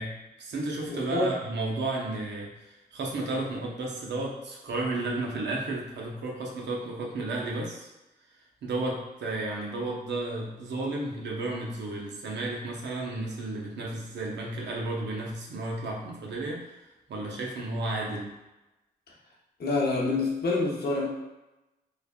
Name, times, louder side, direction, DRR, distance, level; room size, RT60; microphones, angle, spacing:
voice 1, 0.0-7.9 8.6-18.4, right 2 dB, 85° right, -2 dB, 0.6 m, -33 dB
voice 2, 0.9-1.3 19.6-21.1, left 3 dB, 65° left, -3 dB, 0.7 m, -27 dB
3.2 x 2.1 x 2.3 m, 1.0 s
cardioid pair, 60°, 18 cm